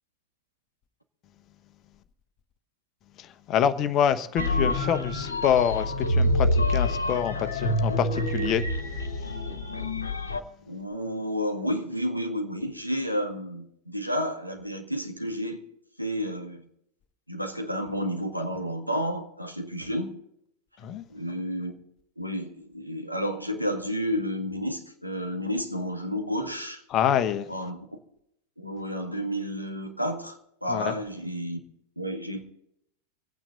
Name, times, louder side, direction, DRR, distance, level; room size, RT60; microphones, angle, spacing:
voice 1, 3.2-8.6 20.8-21.0 26.9-27.5 30.7-30.9, left 9 dB, 35° left, 12 dB, 1.0 m, -26 dB
sound 1, 4.4-10.4, left 1 dB, 75° left, 1.3 m, -26 dB
voice 2, 10.7-15.6 16.0-16.7 17.3-20.1 21.1-21.7 22.2-26.8 27.5-27.9 28.6-31.6 32.0-32.4, equal, 90° right, 3 dB, 1.9 m, -31 dB
25.0 x 9.0 x 4.0 m, 0.76 s
figure-of-eight pair, 90°, 0 cm